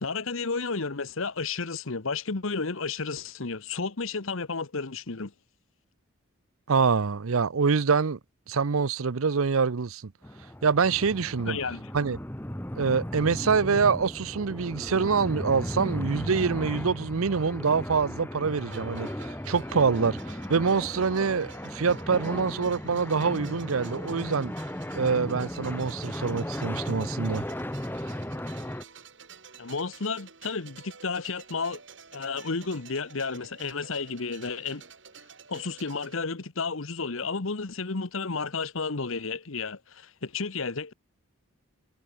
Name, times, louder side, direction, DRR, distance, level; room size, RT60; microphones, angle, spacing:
voice 1, 0.0-5.3 11.4-11.9 29.6-31.8 32.1-34.8 35.5-40.9, left 4 dB, 70° left, 1.2 m, -32 dB
voice 2, 6.7-8.2 8.5-10.1 10.6-11.6 11.9-12.2 12.8-24.5 24.9-27.4 28.0-28.1, right 5 dB, 80° right, 0.6 m, -25 dB
sound 1, 10.2-28.8, left 1 dB, 10° left, 1.0 m, -36 dB
sound 2, 18.6-36.2, right 6 dB, 55° right, 2.4 m, -50 dB
head